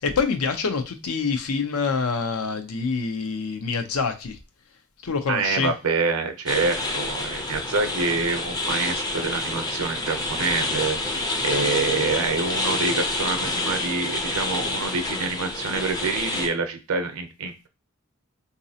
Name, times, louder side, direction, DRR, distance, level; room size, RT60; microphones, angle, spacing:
voice 1, 0.0-4.4 5.0-5.7, left 5 dB, 85° left, 0.6 m, -26 dB
voice 2, 5.3-11.0 11.4-17.7, right 4 dB, 80° right, 0.6 m, -26 dB
sound 1, 6.5-16.5, left 2 dB, 20° left, 0.4 m, -28 dB
3.9 x 2.6 x 2.7 m
head